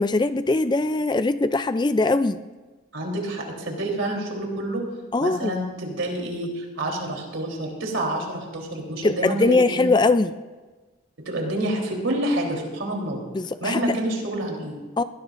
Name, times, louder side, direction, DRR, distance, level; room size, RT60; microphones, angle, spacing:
voice 1, 0.0-2.4 5.1-5.6 9.0-10.3 13.3-14.0 15.0-15.1, left 3 dB, 20° left, 12 dB, 0.3 m, -21 dB
voice 2, 2.9-4.8 5.2-10.0 11.3-13.2 13.6-14.8, right 1 dB, 80° right, 0 dB, 3.5 m, -28 dB
21.5 x 17.0 x 2.6 m, 1.3 s
head